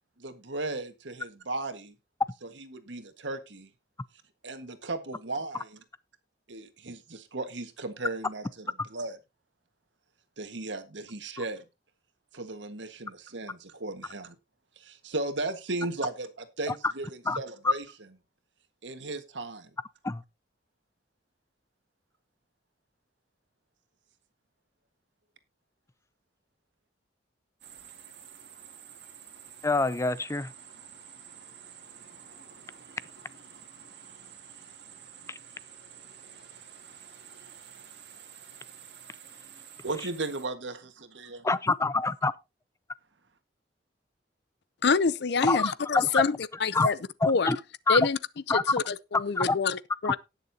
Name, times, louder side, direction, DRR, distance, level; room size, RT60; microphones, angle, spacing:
voice 1, 0.2-1.9 2.4-3.7 4.4-5.8 6.5-9.2 10.4-11.6 12.3-14.3 14.8-17.1 17.4-17.8 18.8-19.7 39.8-41.4, right 2 dB, 85° right, 1.7 m, -36 dB
sound 1, 27.6-40.5, right 8 dB, 65° right, 2.2 m, -50 dB
voice 2, 29.6-30.5 35.3-35.4 41.4-42.3 45.4-46.2 46.7-46.9 47.2-47.6 47.9-48.1 48.5-48.6 49.4-49.6, left 3 dB, 15° left, 0.5 m, -26 dB
voice 3, 44.8-46.4 46.6-47.0 47.3-47.5 47.9-48.2 48.5-50.2, left 5 dB, 65° left, 0.6 m, -26 dB
18.5 x 6.8 x 2.8 m
head